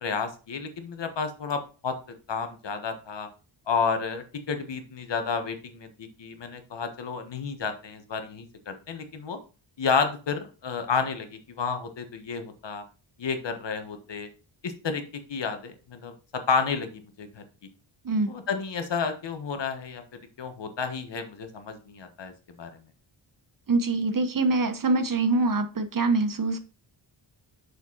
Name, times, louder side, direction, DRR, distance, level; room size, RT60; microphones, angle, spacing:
voice 1, 0.0-2.0 2.3-3.3 3.7-9.4 9.8-12.8 13.2-14.3 14.6-15.0 15.3-17.4 18.3-20.0 20.4-22.3 22.6-22.7, left 5 dB, 60° left, 7 dB, 1.4 m, -31 dB
voice 2, 23.7-26.6, right 3 dB, 45° right, 10 dB, 0.9 m, -24 dB
6.6 x 5.1 x 4.0 m, 0.35 s
cardioid pair, 85°, 48 cm